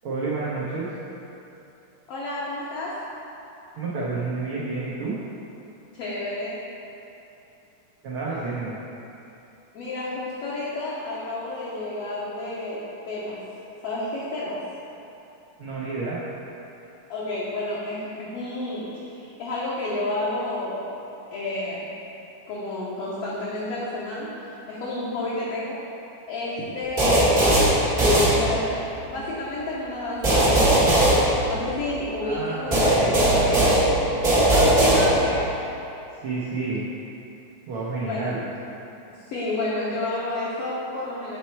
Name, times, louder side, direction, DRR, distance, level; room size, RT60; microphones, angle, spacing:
voice 1, 0.0-0.9 3.7-5.2 8.0-8.8 15.6-16.2 32.2-33.7 36.2-36.9 37.7-38.4, right 3 dB, 90° right, -7 dB, 1.1 m, -30 dB
voice 2, 2.1-3.1 5.9-6.7 9.7-13.4 13.8-14.6 16.8-20.9 21.3-21.9 22.5-25.8 26.3-27.6 28.2-30.9 31.5-33.9 34.5-35.5 38.0-38.3 39.2-41.4, left 2 dB, 65° left, -8 dB, 1.6 m, -30 dB
sound 1, 27.0-28.9 30.2-32.0 32.7-35.5, right 1 dB, 50° right, 0.6 m, -19 dB
7.4 x 4.2 x 4.5 m, 2.9 s
omnidirectional pair, 3.6 m